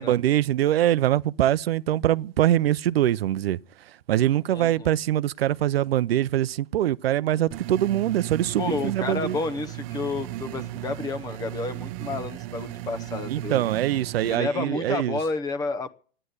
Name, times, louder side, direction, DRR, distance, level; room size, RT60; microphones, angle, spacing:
voice 1, 0.0-3.6 4.1-9.4 13.3-15.2, right 12 dB, 90° right, 0.6 m, -23 dB
voice 2, 4.5-4.9 8.6-13.7 14.2-15.9, left 3 dB, 10° left, 0.7 m, -31 dB
sound 1, 7.5-14.4, right 15 dB, 35° right, 0.7 m, -36 dB
13.0 x 10.0 x 8.0 m
supercardioid pair, 155°, 29 cm